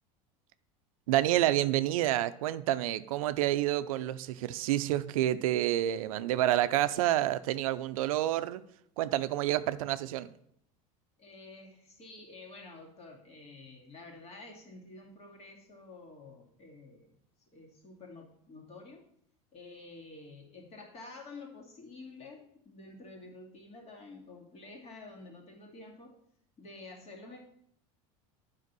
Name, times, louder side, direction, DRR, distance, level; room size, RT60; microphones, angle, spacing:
voice 1, 1.1-8.6 9.0-10.3, right 13 dB, 85° right, 13 dB, 0.5 m, -28 dB
voice 2, 11.2-17.2 17.5-19.1 19.5-26.2 26.6-27.4, left 3 dB, 35° left, 0 dB, 2.5 m, -50 dB
8.4 x 5.1 x 6.0 m, 0.69 s
supercardioid pair, 105°, 17 cm